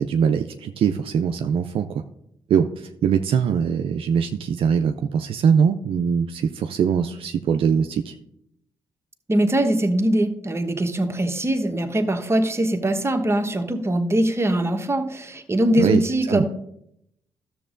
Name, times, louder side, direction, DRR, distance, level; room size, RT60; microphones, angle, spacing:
voice 1, 0.0-2.0 2.5-8.2 15.8-16.0 16.3-16.4, right 7 dB, 65° right, 7 dB, 0.4 m, -22 dB
voice 2, 9.3-16.5, right 1 dB, 25° right, 4 dB, 1.1 m, -22 dB
12.5 x 7.2 x 2.5 m, 0.77 s
supercardioid pair, 50°, 10 cm